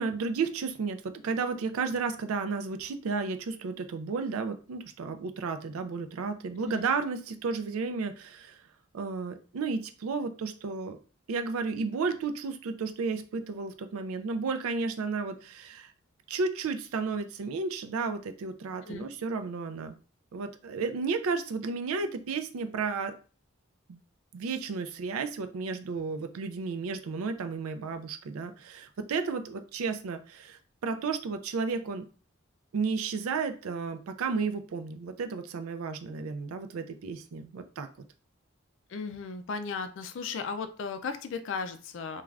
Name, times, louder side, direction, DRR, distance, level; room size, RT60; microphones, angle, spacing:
voice 1, 0.0-8.6 8.9-11.0 11.3-15.9 16.3-20.0 20.3-23.1 23.9-24.0 24.3-32.0 32.7-37.9, right 4 dB, 75° right, 8 dB, 0.4 m, -33 dB
voice 2, 38.9-42.2, left 5 dB, 60° left, 9 dB, 0.3 m, -36 dB
2.4 x 2.3 x 3.2 m, 0.37 s
head